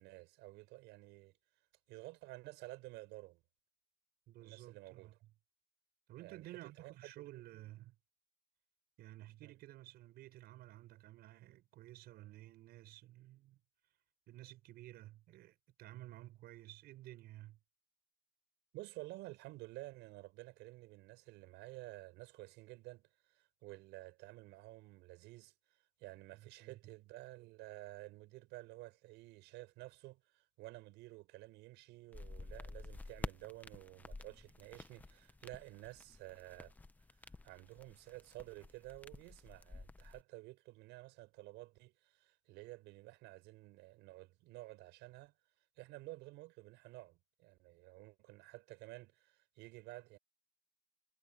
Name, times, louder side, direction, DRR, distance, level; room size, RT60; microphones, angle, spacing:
voice 1, 0.0-1.4 1.9-3.4 4.4-5.2 6.2-7.6 9.4-9.5 18.7-36.8 37.2-45.3 45.8-50.2, right 19 dB, 80° right, 5.3 m, -52 dB
voice 2, 4.3-5.1 6.1-7.9 9.0-13.6 14.3-17.6 26.3-26.9, right 15 dB, 60° right, 6.6 m, -54 dB
sound 1, 32.1-40.2, left 3 dB, 10° left, 0.6 m, -50 dB
cardioid pair, 175°, 18 cm